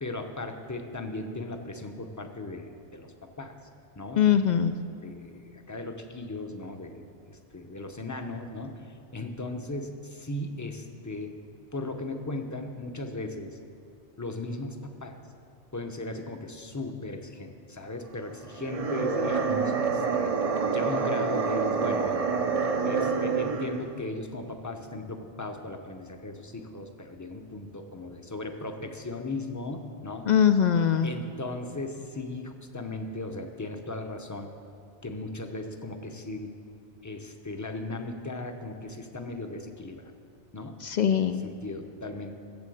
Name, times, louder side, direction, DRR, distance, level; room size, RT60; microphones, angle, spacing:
voice 1, 0.0-3.5 4.0-4.4 5.0-11.4 11.7-13.6 14.2-15.2 15.7-20.3 20.7-22.3 22.8-30.3 31.0-34.5 35.0-36.5 37.0-40.1 40.5-40.8 41.1-42.3, left 2 dB, 20° left, 5 dB, 0.7 m, -37 dB
voice 2, 4.2-4.7 30.3-31.1 40.8-41.4, left 8 dB, 60° left, 10 dB, 0.5 m, -22 dB
sound 1, 18.5-23.9, right 5 dB, 40° right, 0.6 m, -27 dB
14.0 x 7.5 x 7.8 m, 2.5 s
omnidirectional pair, 1.2 m